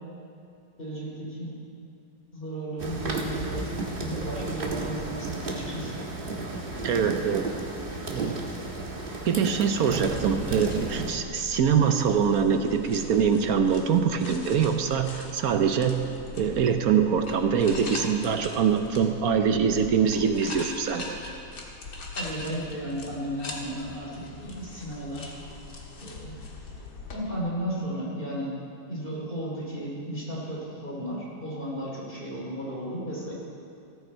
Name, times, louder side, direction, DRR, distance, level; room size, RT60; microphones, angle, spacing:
voice 1, 0.8-1.6 2.3-6.0 22.1-25.4 26.0-26.4 27.1-28.6 28.9-33.3, right 1 dB, 30° left, -5 dB, 3.5 m, -34 dB
sound 1, 2.8-11.1, right 2 dB, 35° right, 1.4 m, -33 dB
voice 2, 6.8-7.4 8.1-8.4 9.2-16.1 16.3-21.2, right 7 dB, 65° right, 7 dB, 1.2 m, -24 dB
sound 2, 9.9-27.2, left 2 dB, 80° left, 2.1 m, -41 dB
15.5 x 14.0 x 4.5 m, 2.5 s
omnidirectional pair, 1.8 m